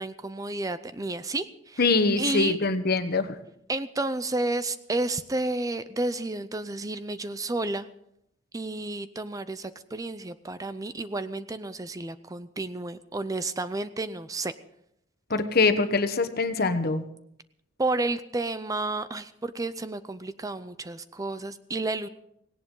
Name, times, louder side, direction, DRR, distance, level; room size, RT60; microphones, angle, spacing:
voice 1, 0.0-1.8 2.2-2.6 3.7-7.9 8.5-14.5 17.8-22.1, right 2 dB, 20° right, 13 dB, 0.5 m, -31 dB
voice 2, 1.8-3.3 15.3-17.0, left 3 dB, 50° left, 9 dB, 1.2 m, -24 dB
18.0 x 17.5 x 3.8 m, 0.75 s
head